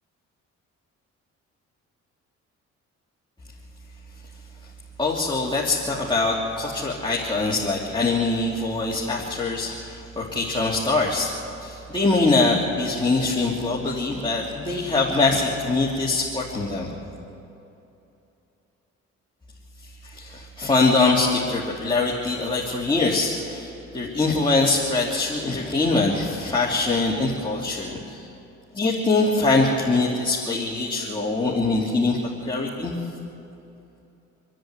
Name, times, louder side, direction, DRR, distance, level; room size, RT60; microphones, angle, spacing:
voice 1, 5.0-11.3 11.6-16.9 20.0-28.3 28.7-32.9, left 3 dB, 15° left, -5 dB, 2.9 m, -23 dB
27.0 x 10.5 x 9.7 m, 2.8 s
cardioid pair, 90°, 30 cm